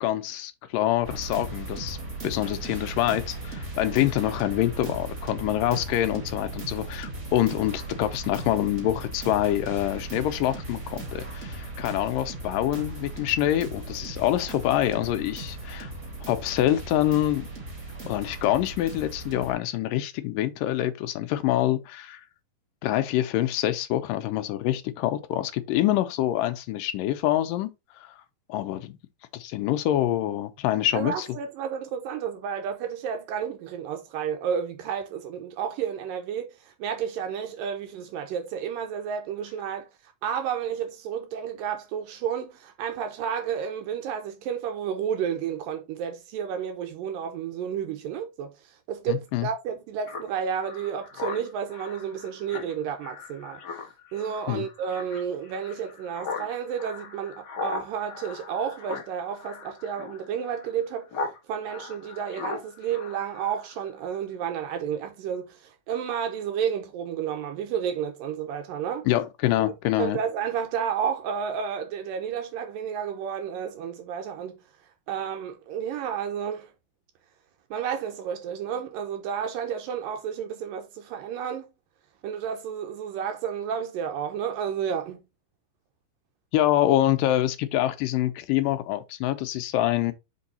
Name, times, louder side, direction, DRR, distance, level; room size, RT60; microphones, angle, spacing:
voice 1, 0.0-2.0 2.2-15.9 16.3-17.5 18.1-22.2 22.8-27.7 28.0-28.2 28.5-29.0 29.3-31.3 49.1-49.5 54.5-54.7 69.1-70.2 86.5-90.1, left 13 dB, 85° left, 2.2 m, -26 dB
sound 1, 1.0-19.5, right 2 dB, 20° right, 2.3 m, -37 dB
voice 2, 30.9-39.9 40.2-53.8 54.1-69.1 69.6-74.6 75.1-76.7 77.7-81.7 82.2-85.2, right 8 dB, 80° right, 2.5 m, -31 dB
Speech synthesizer, 50.1-61.4 61.7-63.9, left 4 dB, 60° left, 1.0 m, -38 dB
5.4 x 4.7 x 4.2 m
omnidirectional pair, 4.1 m